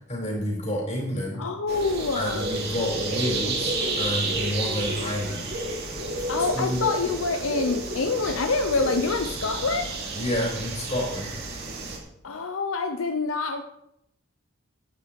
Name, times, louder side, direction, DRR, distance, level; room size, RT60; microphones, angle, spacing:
voice 1, 0.1-1.4 2.1-5.5 6.5-6.8 10.1-11.3, left 1 dB, 35° left, -1 dB, 4.4 m, -29 dB
voice 2, 1.4-2.5 6.3-9.9 12.2-13.6, left 3 dB, 75° left, 6 dB, 0.8 m, -26 dB
sound 1, 1.7-12.0, right 2 dB, 50° right, 2.8 m, -31 dB
11.5 x 9.8 x 4.7 m, 0.77 s
head